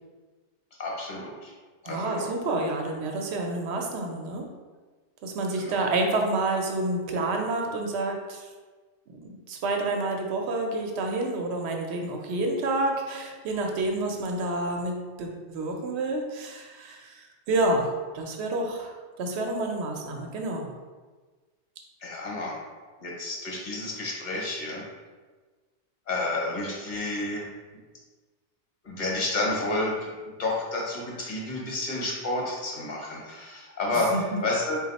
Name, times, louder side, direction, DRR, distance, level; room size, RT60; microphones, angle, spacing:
voice 1, 0.8-1.5 1.8-2.2 5.6-5.8 22.0-22.6 23.0-24.8 26.1-27.5 28.8-30.0 30.2-34.8, left 2 dB, 45° left, -3 dB, 1.0 m, -30 dB
voice 2, 1.9-4.5 5.2-8.5 9.2-20.7 33.9-34.4, right 2 dB, 75° right, 2 dB, 0.9 m, -29 dB
4.0 x 2.3 x 4.0 m, 1.4 s
omnidirectional pair, 1.2 m